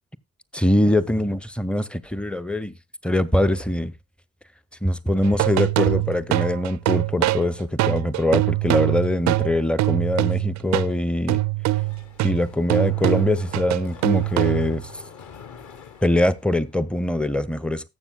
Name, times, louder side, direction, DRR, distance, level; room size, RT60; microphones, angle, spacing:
voice 1, 0.5-2.7 3.0-3.9 4.8-11.4 12.2-14.9 16.0-17.9, left 1 dB, 5° left, 0.5 m, -23 dB
sound 1, 5.2-10.9 11.3-14.8, right 18 dB, 45° right, 0.4 m, -23 dB
Mechanisms, 11.6-16.8, left 6 dB, 45° left, 1.0 m, -44 dB
19.0 x 7.2 x 2.2 m
figure-of-eight pair, 40°, 41 cm